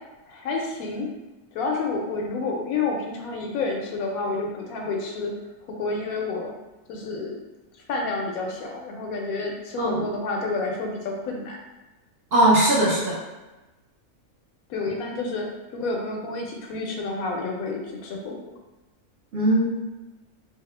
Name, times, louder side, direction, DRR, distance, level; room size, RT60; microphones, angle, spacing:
voice 1, 0.3-1.1 1.5-5.3 5.7-6.5 6.9-7.4 7.9-11.6 14.7-15.5 15.7-18.4, left 3 dB, 75° left, 1 dB, 1.0 m, -29 dB
voice 2, 12.3-13.2 19.3-19.7, right 1 dB, 60° right, -6 dB, 0.6 m, -19 dB
3.5 x 2.1 x 3.2 m, 1.1 s
omnidirectional pair, 1.5 m